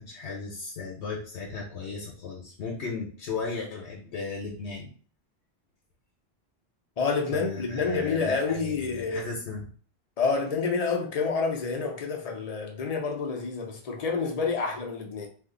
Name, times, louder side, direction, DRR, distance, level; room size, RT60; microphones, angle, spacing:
voice 1, 0.0-4.9 7.3-9.6, left 4 dB, 75° left, 1.0 m, -36 dB
voice 2, 7.0-9.3 10.2-15.3, left 4 dB, 45° left, 0.5 m, -28 dB
2.6 x 2.4 x 3.7 m
omnidirectional pair, 1.1 m